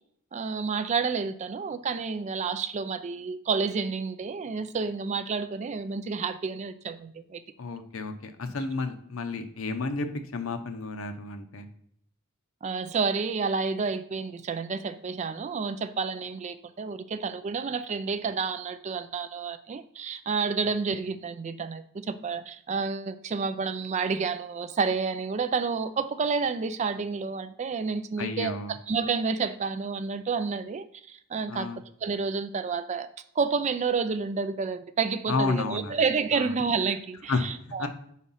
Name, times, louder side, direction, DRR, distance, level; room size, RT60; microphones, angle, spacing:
voice 1, 0.3-7.4 12.6-31.7 32.0-33.1 33.4-37.9, right 5 dB, 35° right, 10 dB, 0.3 m, -30 dB
voice 2, 7.6-10.1 10.3-11.7 28.2-28.7 31.5-31.8 35.3-36.0 36.3-36.5 37.3-37.4 37.8-37.9, left 3 dB, 70° left, 7 dB, 0.7 m, -31 dB
4.8 x 4.1 x 5.5 m, 0.68 s
head